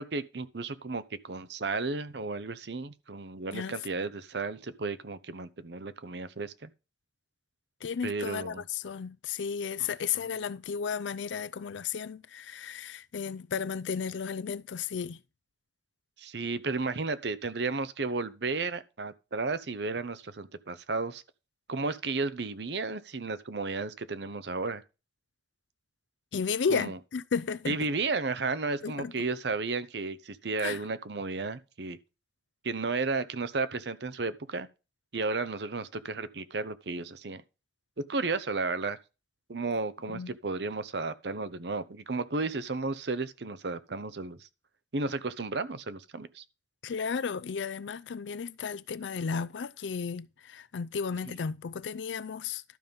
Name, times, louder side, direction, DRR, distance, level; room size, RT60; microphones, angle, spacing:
voice 1, 0.0-6.7 8.0-8.6 10.1-10.3 16.2-21.2 21.7-24.8 26.7-27.0 27.7-32.0 32.6-34.7 35.1-37.4 38.0-39.0 39.5-44.5 44.9-46.4 51.3-51.4, right 3 dB, 70° right, 0.8 m, -33 dB
voice 2, 7.8-15.2 26.3-27.8 28.8-29.1 30.6-30.8 40.1-40.3 46.8-52.6, left 6 dB, 90° left, 0.5 m, -33 dB
12.0 x 5.5 x 5.3 m
head